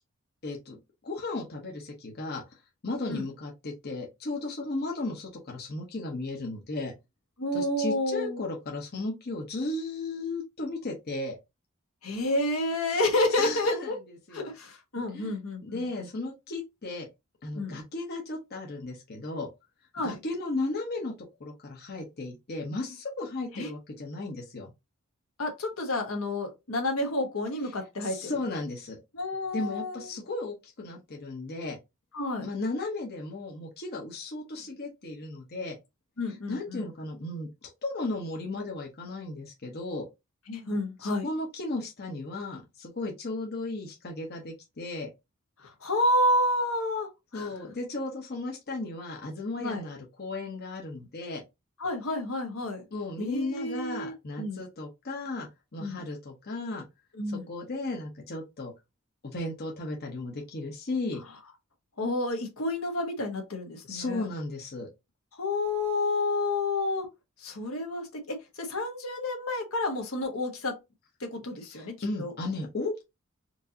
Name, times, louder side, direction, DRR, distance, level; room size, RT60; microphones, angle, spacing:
voice 1, 0.4-0.8 1.0-2.4 2.8-6.9 7.5-11.4 13.4-13.9 14.3-14.5 15.1-17.1 17.4-19.5 20.0-21.1 21.4-24.7 28.0-29.0 29.5-31.8 32.4-35.8 36.3-40.1 41.0-45.1 47.3-51.4 52.9-56.8 57.3-58.7 59.2-61.2 63.9-64.9 71.7-73.0, left 2 dB, 50° left, 1.0 m, -35 dB
voice 2, 7.4-8.4 12.0-14.0 14.3-16.1 17.5-17.8 19.9-20.2 23.6-23.7 25.4-28.3 29.1-30.1 32.1-32.5 36.2-36.8 40.5-41.3 45.8-47.5 49.6-49.8 51.8-52.8 53.2-54.6 55.8-56.0 57.2-57.4 62.0-64.3 65.4-67.1 67.4-70.7 71.2-72.3, left 1 dB, 80° left, 1.3 m, -30 dB
4.5 x 2.7 x 2.7 m
head